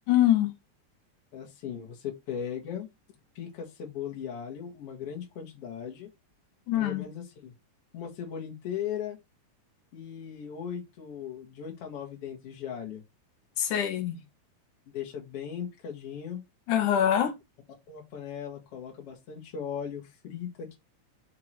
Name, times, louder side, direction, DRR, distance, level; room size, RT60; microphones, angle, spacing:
voice 1, 0.1-0.5 6.7-7.1 13.6-14.1 16.7-17.3, left 11 dB, 75° left, 2.6 m, -24 dB
voice 2, 1.3-2.9 3.4-6.1 6.7-7.5 7.9-9.2 9.9-13.0 14.9-16.4 17.9-20.8, left 8 dB, 50° left, 2.6 m, -38 dB
5.8 x 3.7 x 4.6 m
omnidirectional pair, 3.6 m